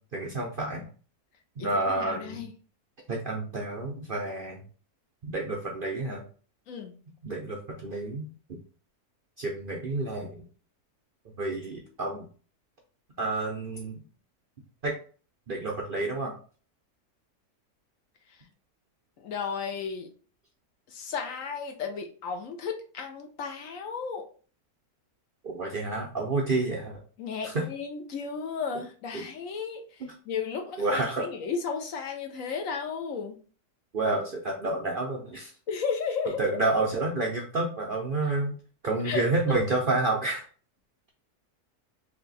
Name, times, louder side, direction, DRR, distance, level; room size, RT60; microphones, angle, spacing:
voice 1, 0.1-0.9 1.6-2.4 3.1-4.6 5.2-6.2 7.2-8.3 9.4-10.4 11.4-12.2 13.2-14.0 14.8-15.0 15.5-16.3 25.4-27.0 27.4-27.7 29.1-29.2 30.0-30.1 30.8-31.3 33.9-35.5 36.4-38.5 38.8-40.4, right 2 dB, 55° right, -1 dB, 0.6 m, -29 dB
voice 2, 1.6-2.5 6.7-6.9 19.2-20.1 20.9-24.3 27.2-33.4 35.7-36.4 38.2-38.3 39.0-39.2, left 6 dB, 65° left, 4 dB, 1.0 m, -34 dB
3.3 x 2.8 x 3.9 m, 0.39 s
omnidirectional pair, 1.6 m